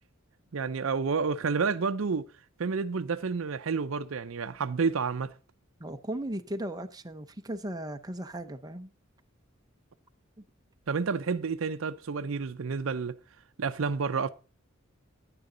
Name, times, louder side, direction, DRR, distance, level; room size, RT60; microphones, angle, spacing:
voice 1, 0.5-2.3 2.6-5.3 10.9-13.2 13.6-14.3, right 5 dB, 70° right, 0.6 m, -30 dB
voice 2, 5.8-8.9, right 1 dB, 20° right, 0.8 m, -36 dB
10.5 x 9.6 x 3.8 m
head